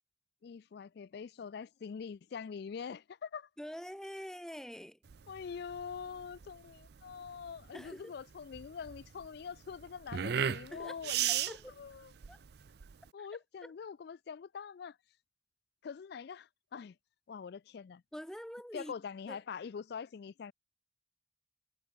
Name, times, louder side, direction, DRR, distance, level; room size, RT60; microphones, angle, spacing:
voice 1, 0.4-3.5 5.3-12.1 13.1-15.0 15.8-17.0 17.3-18.0 18.7-20.5, left 6 dB, 55° left, 0.3 m, -44 dB
voice 2, 3.6-5.0 7.7-8.2 10.7-11.7 12.3-12.4 13.2-13.3 13.6-13.7 18.1-18.9 19.3-19.4, equal, 5° left, 1.4 m, -45 dB
sound 1, 5.1-13.1, right 9 dB, 55° right, 0.5 m, -37 dB
head